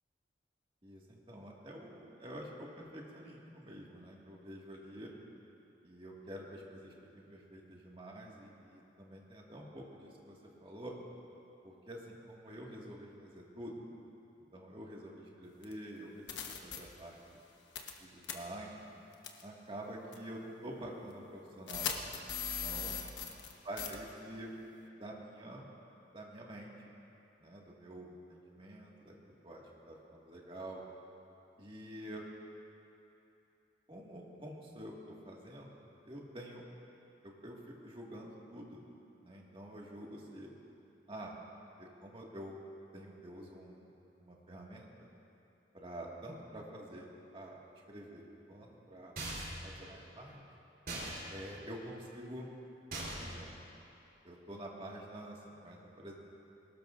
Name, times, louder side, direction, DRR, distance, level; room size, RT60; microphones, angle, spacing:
voice 1, 0.8-5.1 5.8-10.9 11.6-13.9 14.5-17.4 18.0-18.8 19.4-23.0 23.6-24.5 25.0-25.7 26.1-26.9 27.4-30.8 31.6-32.2 33.9-35.8 36.1-36.6 37.2-38.8 39.2-40.5 41.1-41.4 41.8-42.6 42.9-43.9 44.2-45.1 45.7-47.6 47.9-49.1 49.6-50.5 51.3-52.5 53.2-53.5 54.2-56.1, right 1 dB, 30° right, -3 dB, 2.0 m, -48 dB
sound 1, 15.6-15.7 16.3-16.8 17.8-18.0 18.2-18.3 19.2-19.4 20.1-20.2 21.7-23.5 23.8-23.9, left 7 dB, 75° left, 1.2 m, -38 dB
sound 2, 49.2-49.7 50.9-51.2 52.9-53.4, right 1 dB, 55° right, 4.0 m, -40 dB
21.5 x 18.5 x 2.6 m, 2.8 s
head